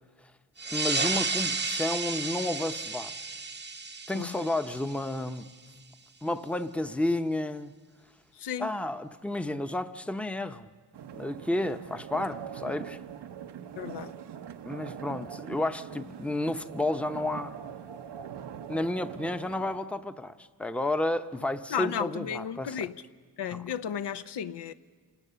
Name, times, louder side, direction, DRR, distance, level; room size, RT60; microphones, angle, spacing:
sound 1, 0.6-5.7, right 4 dB, 25° right, 0.7 m, -33 dB
voice 1, 0.7-3.1 4.1-5.4 6.2-7.7 8.6-10.7 11.1-13.0 14.7-17.6 18.7-22.9 23.5-23.6, left 1 dB, 5° left, 0.7 m, -31 dB
voice 2, 8.4-8.7 13.8-14.1 21.7-22.9 23.4-24.7, left 8 dB, 85° left, 0.8 m, -33 dB
sound 2, 10.9-19.8, right 8 dB, 85° right, 0.9 m, -42 dB
28.0 x 18.5 x 6.9 m
cardioid pair, 90°, 40 cm